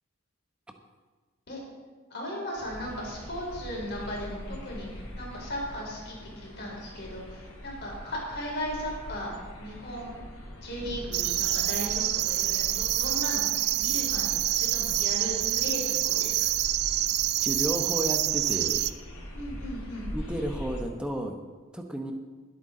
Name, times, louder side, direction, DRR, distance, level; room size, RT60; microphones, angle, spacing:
voice 1, 2.1-10.2 10.6-13.4 13.8-16.4 19.3-20.1, equal, 50° left, -3 dB, 4.4 m, -37 dB
sound 1, 2.5-20.8, equal, 90° left, 3.2 m, -42 dB
sound 2, 11.1-18.9, right 14 dB, 50° right, 0.4 m, -27 dB
voice 2, 17.4-18.8 20.1-21.4 21.7-22.1, equal, 5° right, 3 dB, 1.0 m, -32 dB
20.0 x 8.5 x 3.9 m, 1.4 s
head